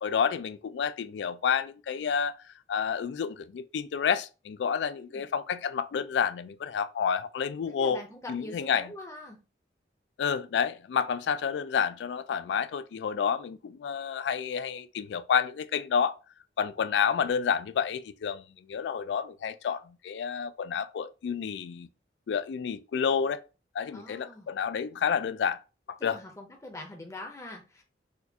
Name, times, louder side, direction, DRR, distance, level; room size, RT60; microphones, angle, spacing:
voice 1, 0.0-2.3 2.7-8.0 8.3-8.9 10.2-16.2 16.6-18.4 18.7-21.9 22.3-23.4 23.7-25.6 26.0-26.2, left 7 dB, 80° left, 0.3 m, -29 dB
voice 2, 4.9-5.3 7.7-9.4 23.9-24.5 26.0-27.8, left 1 dB, 15° left, 0.6 m, -44 dB
4.3 x 2.3 x 2.7 m
head